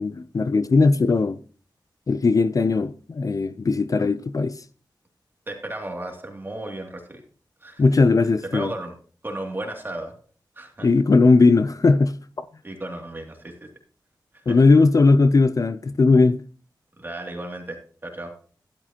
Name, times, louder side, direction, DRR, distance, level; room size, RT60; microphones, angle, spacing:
voice 1, 0.0-1.4 2.1-4.6 7.8-8.7 10.8-12.4 14.5-16.4, left 3 dB, 45° left, 0.5 m, -18 dB
voice 2, 5.5-7.2 7.6-7.8 8.5-8.9 9.2-10.1 10.6-10.9 12.6-13.7 14.3-14.6 17.0-18.3, right 1 dB, 25° right, 2.6 m, -34 dB
12.0 x 11.5 x 2.9 m
wide cardioid pair, 95°, 8 cm